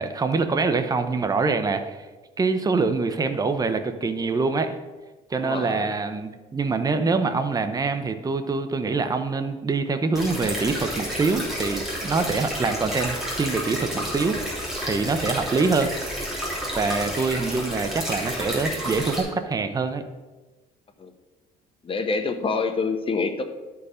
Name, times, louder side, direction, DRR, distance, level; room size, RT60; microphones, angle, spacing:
voice 1, 0.0-2.1 2.4-4.8 5.3-15.9 16.8-20.0, right 4 dB, 20° right, 8 dB, 0.7 m, -25 dB
voice 2, 5.4-5.9 12.2-12.3 21.0-21.1 21.8-23.4, left 4 dB, 30° left, 7 dB, 1.0 m, -27 dB
sound 1, 10.1-19.2, equal, ahead, 3.0 m, -30 dB
11.5 x 4.8 x 5.0 m, 1.2 s
cardioid pair, 110°, 17 cm